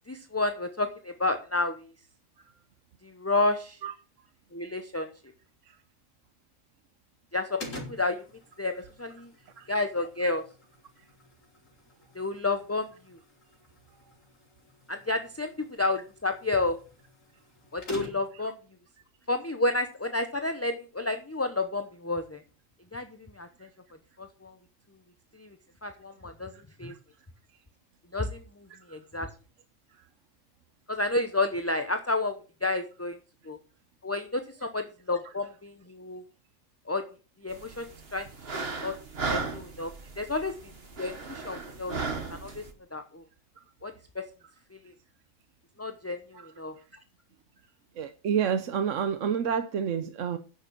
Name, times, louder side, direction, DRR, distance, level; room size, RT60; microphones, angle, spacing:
voice 1, 0.1-1.9 3.0-3.8 4.5-5.1 7.3-8.2 8.6-9.3 9.7-10.4 12.1-13.2 14.9-15.5 15.8-16.8 17.7-18.5 19.3-22.4 22.9-23.1 23.3-23.5 24.2-24.6 25.4-25.6 25.8-26.5 26.8-26.9 28.1-29.3 30.9-33.2 33.5-33.6 34.0-36.2 36.9-37.0 37.4-37.9 38.1-38.3 38.5-38.9 39.3-40.5 41.0-42.0 42.3-42.6 42.9-43.2 43.8-44.2 45.8-46.7, left 2 dB, 15° left, 0.6 m, -30 dB
sound 1, 7.6-18.5, left 1 dB, 75° left, 3.5 m, -48 dB
sound 2, 37.5-42.7, right 4 dB, 50° right, 1.8 m, -36 dB
voice 2, 48.0-50.4, right 7 dB, 75° right, 1.1 m, -28 dB
10.0 x 6.7 x 6.0 m
omnidirectional pair, 1.3 m